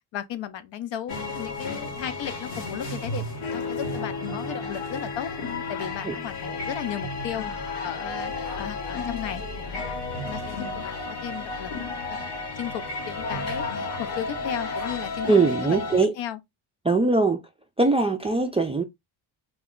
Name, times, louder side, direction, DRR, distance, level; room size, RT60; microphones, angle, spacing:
voice 1, 0.1-5.4 5.7-10.0 10.3-15.8 16.2-16.4, left 10 dB, 60° left, 0.6 m, -36 dB
sound 1, 1.1-16.0, left 3 dB, 85° left, 1.2 m, -32 dB
voice 2, 15.3-16.1 16.8-17.4 17.8-18.8, right 3 dB, 15° right, 0.3 m, -21 dB
2.3 x 2.1 x 3.5 m
supercardioid pair, 70°, 49 cm